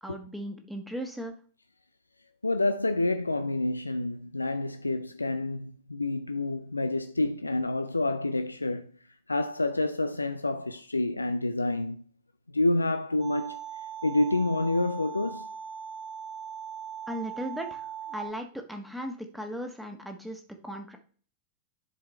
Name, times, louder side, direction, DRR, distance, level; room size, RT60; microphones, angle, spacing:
voice 1, 0.0-1.3 17.1-21.0, equal, ahead, 1.4 m, -37 dB
voice 2, 2.4-8.9 9.3-12.0 12.5-13.6 14.0-15.5, left 2 dB, 80° left, 0.4 m, -28 dB
sound 1, 13.2-18.3, right 8 dB, 35° right, 1.3 m, -40 dB
11.0 x 4.8 x 3.2 m
figure-of-eight pair, 90°, 0 cm